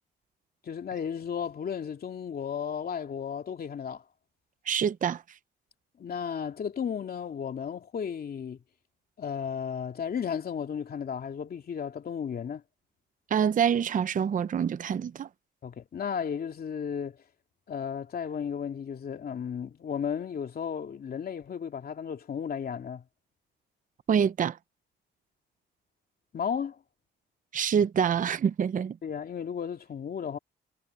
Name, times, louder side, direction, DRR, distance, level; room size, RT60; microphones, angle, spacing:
voice 1, 0.6-4.0 6.0-8.6 9.2-12.6 15.6-17.2 17.7-23.0 26.3-26.8 29.0-30.4, left 7 dB, 50° left, 2.7 m, -34 dB
voice 2, 4.7-5.2 13.3-15.3 24.1-24.6 27.5-29.0, right 8 dB, 40° right, 0.7 m, -26 dB
cardioid pair, 90°, 20 cm